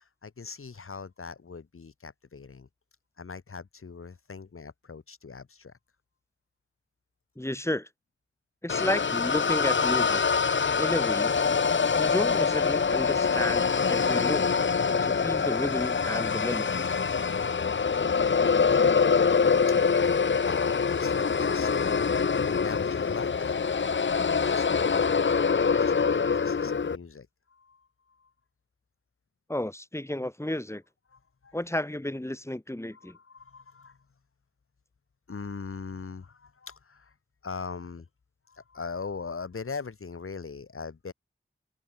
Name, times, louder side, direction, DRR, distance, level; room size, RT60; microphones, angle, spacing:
voice 1, 0.0-2.7 3.2-5.7 19.9-23.6 24.1-28.3 31.1-31.6 32.9-34.0 35.3-37.1 37.4-38.1 38.5-41.1, left 5 dB, 85° left, 4.8 m, -41 dB
voice 2, 7.4-7.9 8.6-10.2 10.8-11.3 12.0-14.5 14.9-16.8 29.5-30.8 31.5-33.2, left 1 dB, 10° left, 6.0 m, -32 dB
sound 1, 8.7-27.0, left 5 dB, 60° left, 1.0 m, -25 dB
wide cardioid pair, 85°, 21 cm